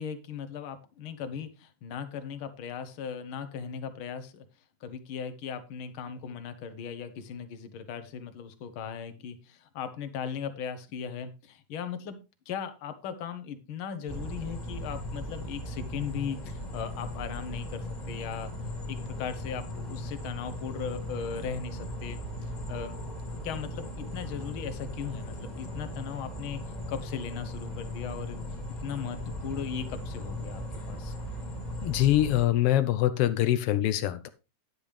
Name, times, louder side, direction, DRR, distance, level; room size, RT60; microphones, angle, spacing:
voice 1, 0.0-4.4 4.8-12.2 12.5-18.5 18.9-22.9 23.4-26.6 26.9-28.4 28.8-31.1, left 7 dB, 60° left, 10 dB, 1.5 m, -38 dB
sound 1, 14.1-32.5, left 1 dB, 15° left, 1.7 m, -38 dB
voice 2, 31.8-34.3, left 13 dB, 90° left, 11 dB, 1.3 m, -24 dB
9.9 x 8.9 x 3.4 m, 0.28 s
omnidirectional pair, 3.4 m